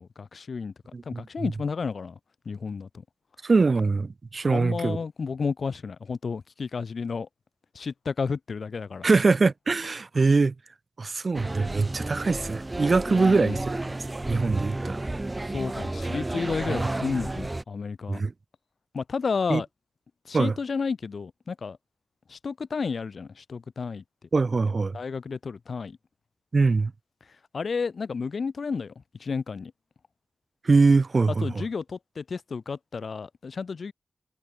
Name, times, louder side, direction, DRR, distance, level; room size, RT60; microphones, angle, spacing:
voice 1, 0.0-2.2 2.5-2.9 4.5-7.3 7.7-9.1 13.1-13.6 15.5-18.2 18.9-19.7 20.3-21.8 22.3-24.0 24.9-26.0 27.5-28.9 29.2-29.7 31.4-33.9, left 5 dB, 70° left, 0.4 m, -32 dB
voice 2, 0.9-1.2 3.4-5.0 9.0-10.5 11.0-13.8 14.3-15.0 16.7-16.9 18.1-18.3 19.5-19.6 20.3-20.5 24.3-25.0 26.5-26.9 30.6-31.6, right 4 dB, 55° right, 0.5 m, -23 dB
sound 1, 11.3-17.6, right 2 dB, 25° right, 1.4 m, -31 dB
cardioid pair, 60°, 0 cm